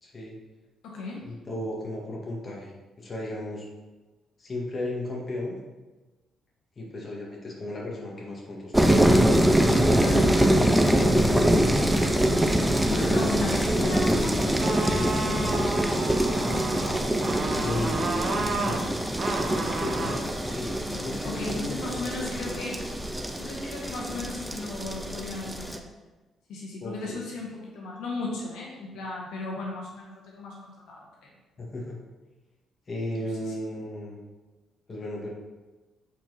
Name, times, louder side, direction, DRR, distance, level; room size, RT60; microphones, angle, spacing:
voice 1, 0.0-0.4 1.2-2.7 3.0-3.7 4.4-5.6 6.8-9.3 11.0-11.8 12.9-13.5 17.6-18.8 19.8-22.3 26.8-27.2 31.6-32.0 32.9-34.2 34.9-35.3, left 1 dB, 35° left, -3 dB, 2.1 m, -35 dB
voice 2, 0.8-1.2 9.8-10.3 12.5-12.6 12.9-16.0 20.6-22.9 23.4-25.8 26.5-31.3 33.2-33.5, left 2 dB, 85° left, -2 dB, 1.4 m, -36 dB
sound 1, 8.7-25.8, right 1 dB, 5° right, 0.7 m, -24 dB
sound 2, 12.0-18.8, left 2 dB, 65° left, 2.0 m, -45 dB
sound 3, 14.6-20.2, right 3 dB, 50° right, 1.2 m, -31 dB
8.2 x 4.4 x 4.2 m, 1.2 s
cardioid pair, 90°, 0 cm